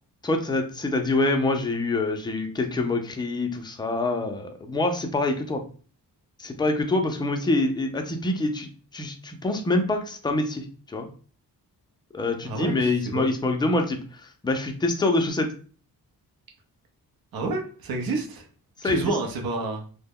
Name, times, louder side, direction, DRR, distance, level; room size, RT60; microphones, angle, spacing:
voice 1, 0.2-5.6 6.4-11.1 12.1-14.0 14.4-15.5 18.8-19.1, left 2 dB, 10° left, 4 dB, 0.3 m, -25 dB
voice 2, 12.4-13.3 17.3-18.5 18.8-19.8, right 3 dB, 65° right, 2 dB, 0.7 m, -29 dB
2.2 x 2.0 x 3.5 m, 0.41 s
wide cardioid pair, 100°, 39 cm